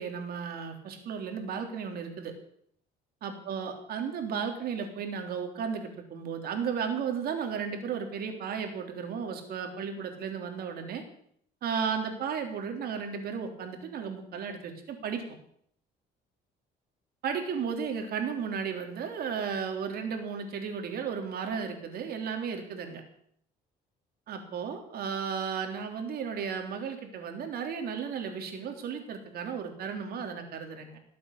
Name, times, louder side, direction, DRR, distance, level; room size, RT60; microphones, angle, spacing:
voice 1, 0.0-2.3 3.2-11.0 11.6-15.2 17.2-23.0 24.3-31.0, right 6 dB, 65° right, 5 dB, 3.5 m, -34 dB
19.0 x 8.5 x 8.4 m, 0.67 s
cardioid pair, 110°, 17 cm